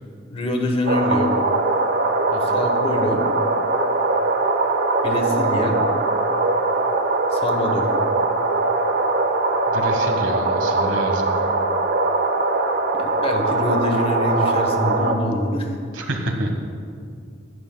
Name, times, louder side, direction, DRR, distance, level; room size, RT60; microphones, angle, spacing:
voice 1, 0.3-1.3 2.4-3.2 5.0-5.8 7.3-7.9 13.0-15.7, left 1 dB, 30° left, 3 dB, 1.0 m, -24 dB
sound 1, 0.9-15.1, right 2 dB, 55° right, 0.7 m, -21 dB
voice 2, 2.3-2.7 9.7-11.3 15.9-16.6, right 1 dB, 75° right, 4 dB, 1.3 m, -28 dB
15.0 x 11.0 x 2.3 m, 2.3 s
head